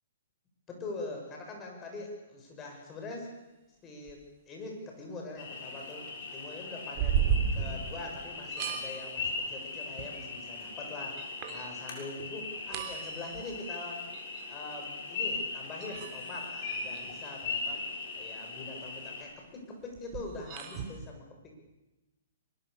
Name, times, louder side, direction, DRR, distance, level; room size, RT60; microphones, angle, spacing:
voice 1, 0.7-3.3 3.8-7.3 7.5-14.1 14.5-17.8 18.1-21.6, left 2 dB, 20° left, 1 dB, 7.3 m, -43 dB
sound 1, 4.1-4.2 7.0-8.2 8.5-9.3 10.0-10.1 10.8-10.9 11.2-11.7 12.2-12.3 12.5-13.6 14.1-14.4 15.8-17.5 20.0-21.0, right 7 dB, 35° right, 3.7 m, -34 dB
sound 2, 5.4-19.2, left 4 dB, 50° left, 6.8 m, -39 dB
24.0 x 21.0 x 7.1 m, 1.0 s
hypercardioid pair, 125°, 0 cm